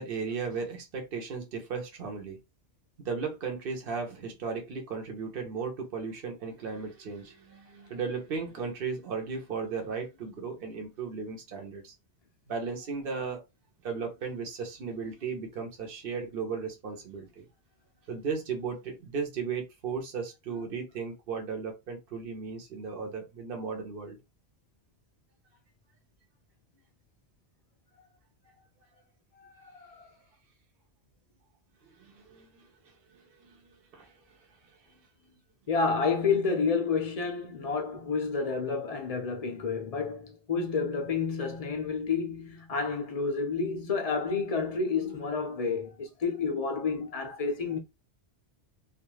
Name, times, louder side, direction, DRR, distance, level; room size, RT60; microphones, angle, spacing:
voice 1, 0.0-2.4 3.0-11.9 12.5-13.4 13.8-17.5 18.1-24.2 31.8-34.4 34.8-35.4, right 5 dB, 55° right, 1.0 m, -36 dB
voice 2, 29.4-30.1 35.7-47.8, left 5 dB, 45° left, 0.5 m, -30 dB
2.5 x 2.3 x 3.0 m
omnidirectional pair, 1.2 m